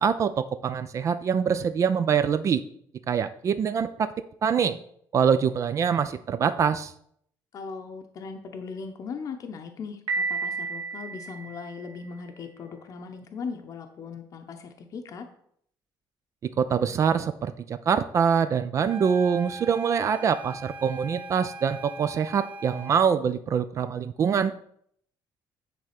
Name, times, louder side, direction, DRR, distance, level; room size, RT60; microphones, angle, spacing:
voice 1, 0.0-2.6 3.1-4.1 4.4-4.8 5.1-6.9 16.6-24.7, right 7 dB, 35° right, 12 dB, 0.4 m, -24 dB
voice 2, 7.5-15.3, left 5 dB, 40° left, 5 dB, 0.8 m, -38 dB
Piano, 10.1-12.0, right 4 dB, 65° right, 1.8 m, -31 dB
sound 1, 18.8-23.1, right 2 dB, 20° right, 0.8 m, -41 dB
9.4 x 3.6 x 5.8 m, 0.67 s
cardioid pair, 160°, 9 cm